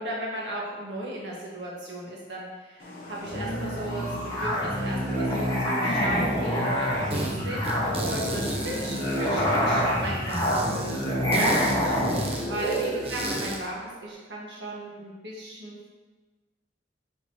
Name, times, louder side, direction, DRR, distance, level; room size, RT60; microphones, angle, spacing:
voice 1, 0.0-15.9, right 1 dB, 75° right, -4 dB, 1.7 m, -36 dB
sound 1, 2.8-10.2, left 1 dB, 55° left, 1.0 m, -42 dB
Musical instrument, 3.2-13.4, equal, 20° left, 1.6 m, -27 dB
sound 2, 7.1-7.3 7.6-9.8 10.3-13.7, right 1 dB, 35° right, 0.8 m, -33 dB
6.7 x 5.2 x 3.0 m, 1.3 s
head